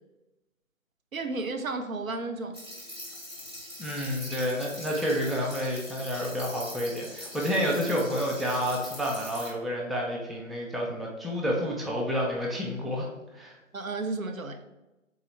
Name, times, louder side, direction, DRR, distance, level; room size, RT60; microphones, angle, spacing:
voice 1, 1.1-2.6 13.7-14.6, right 3 dB, 85° right, 7 dB, 0.7 m, -33 dB
sound 1, 2.5-9.5, equal, 20° right, 0.9 m, -42 dB
voice 2, 3.8-13.1 13.3-13.6, equal, ahead, -2 dB, 0.3 m, -29 dB
3.7 x 3.0 x 3.1 m, 1.0 s
figure-of-eight pair, 160°, 40 cm